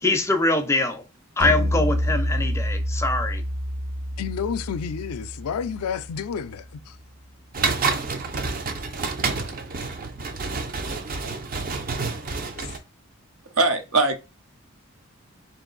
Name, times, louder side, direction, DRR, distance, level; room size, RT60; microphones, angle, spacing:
voice 1, 0.0-1.0 1.4-3.4, left 2 dB, 10° left, 0.4 m, -23 dB
sound 1, 1.4-6.8, equal, 60° right, 1.3 m, -28 dB
voice 2, 4.2-6.6 12.6-12.7, left 7 dB, 85° left, 0.4 m, -30 dB
sound 2, 7.5-12.8, right 4 dB, 40° right, 0.5 m, -28 dB
voice 3, 13.6-14.2, right 3 dB, 80° right, 0.8 m, -20 dB
3.7 x 2.6 x 3.9 m
head